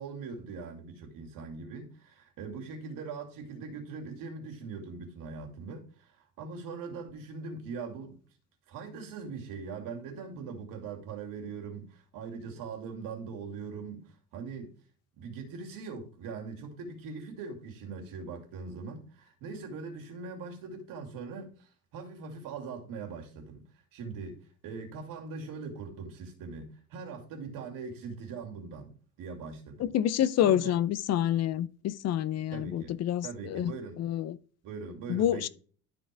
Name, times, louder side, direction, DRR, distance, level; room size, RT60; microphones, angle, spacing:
voice 1, 0.0-8.2 8.7-14.8 15.2-23.6 23.9-29.9 30.4-30.8 32.5-32.9 33.2-34.0 34.6-35.5, right 4 dB, 85° right, 2.5 m, -41 dB
voice 2, 29.8-34.4 35.1-35.5, left 11 dB, 50° left, 0.6 m, -28 dB
12.0 x 4.5 x 3.3 m
cardioid pair, 150°, 32 cm